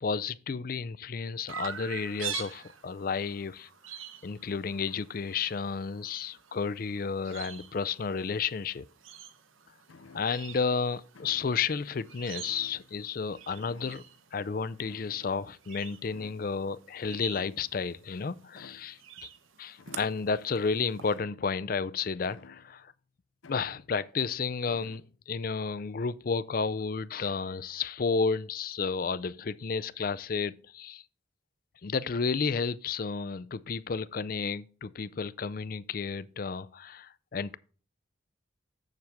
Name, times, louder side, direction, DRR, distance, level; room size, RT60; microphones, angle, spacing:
voice 1, 0.0-3.7 4.2-8.8 10.1-14.0 14.3-19.3 19.6-22.9 23.5-31.0 31.8-37.6, left 5 dB, 45° left, 0.4 m, -32 dB
Chirp tweet, 1.5-21.1, right 8 dB, 90° right, 1.0 m, -46 dB
sound 1, 9.9-10.6 11.1-11.8 12.4-13.3 13.6-14.2 14.8-15.7 16.0-16.8 17.4-18.0 18.5-19.0 19.8-20.5 21.1-21.7 22.2-22.9 23.4-24.2 24.7-25.2, left 4 dB, 85° left, 0.6 m, -54 dB
7.7 x 7.2 x 3.5 m
head